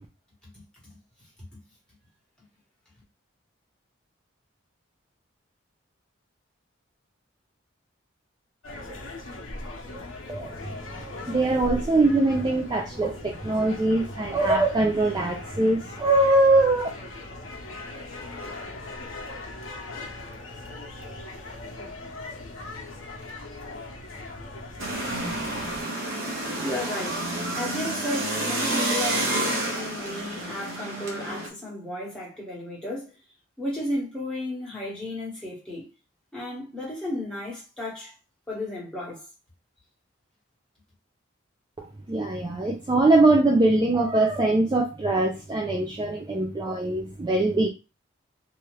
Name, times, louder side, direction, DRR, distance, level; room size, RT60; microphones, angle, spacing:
voice 1, 0.4-1.0 1.4-1.6 25.6-25.7 26.4-27.2 27.5-33.1 33.6-35.9 36.3-38.1 38.5-39.2, left 1 dB, 5° left, 1.2 m, -34 dB
sound 1, 8.6-25.8, left 2 dB, 75° left, 0.8 m, -39 dB
voice 2, 11.3-16.9 41.8-47.7, right 2 dB, 20° right, 0.3 m, -22 dB
sound 2, 24.8-31.5, right 1 dB, 75° right, 0.9 m, -29 dB
2.8 x 2.3 x 3.1 m
head